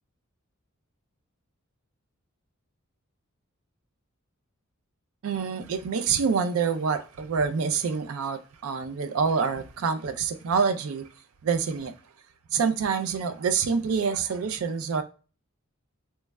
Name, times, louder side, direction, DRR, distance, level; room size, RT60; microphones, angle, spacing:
voice 1, 5.2-11.1 11.4-11.9 12.5-15.0, right 5 dB, 70° right, 0.4 m, -26 dB
3.1 x 2.1 x 3.3 m
head